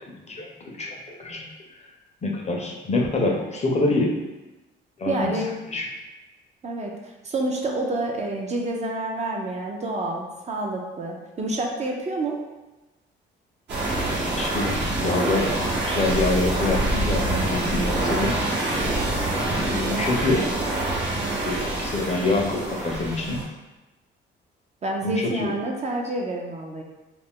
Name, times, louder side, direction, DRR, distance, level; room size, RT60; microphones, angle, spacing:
voice 1, 0.1-1.5 2.2-4.1 5.0-5.4 5.7-5.9 14.2-18.4 19.5-20.4 21.4-23.4 25.0-25.5, left 2 dB, 35° left, 0 dB, 0.5 m, -26 dB
voice 2, 5.1-5.5 6.6-7.0 7.2-12.4 21.1-21.5 24.8-26.8, right 1 dB, 35° right, 0 dB, 0.5 m, -28 dB
sound 1, 13.7-23.4, right 2 dB, 60° right, 0.9 m, -26 dB
2.4 x 2.0 x 3.5 m, 1.1 s
cardioid pair, 90°, 20 cm